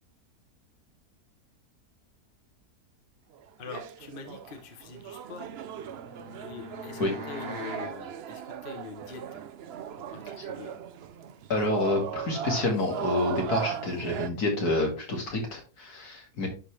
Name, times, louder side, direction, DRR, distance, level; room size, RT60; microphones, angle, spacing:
sound 1, 3.4-14.3, right 9 dB, 85° right, 0.5 m, -38 dB
voice 1, 3.6-5.6 6.4-9.4 10.1-10.7, left 5 dB, 40° left, 5 dB, 1.0 m, -44 dB
sound 2, 5.4-8.0, equal, 40° right, 1.5 m, -42 dB
voice 2, 11.5-16.5, left 2 dB, 70° left, 1 dB, 2.7 m, -28 dB
11.0 x 4.1 x 3.2 m, 0.35 s
omnidirectional pair, 1.7 m